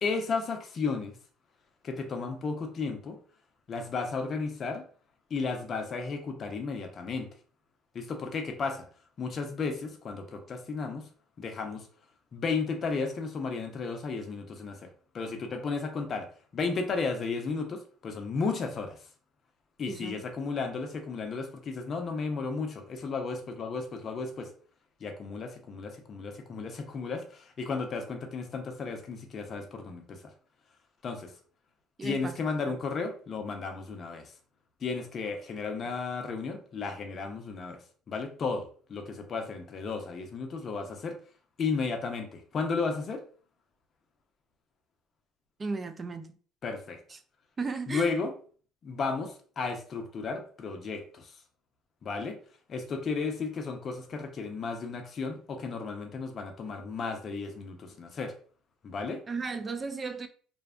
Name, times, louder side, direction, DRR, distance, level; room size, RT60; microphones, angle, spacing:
voice 1, 0.0-1.1 1.8-3.2 3.7-4.8 5.3-7.3 7.9-8.8 9.2-11.0 11.4-11.9 12.3-16.3 16.5-19.0 19.8-24.5 25.0-30.2 31.0-31.3 32.0-34.2 34.8-37.8 38.1-41.2 41.6-43.2 46.6-47.0 47.9-48.3 48.8-51.2 52.0-52.4 52.7-58.3 58.8-59.2, left 4 dB, 45° left, 0.6 m, -34 dB
voice 2, 19.9-20.2 32.0-32.8 35.8-35.9 45.6-46.4 47.1-47.2 47.6-48.1 59.3-60.3, right 4 dB, 30° right, 0.3 m, -35 dB
2.5 x 2.1 x 2.4 m
supercardioid pair, 85°, 0 cm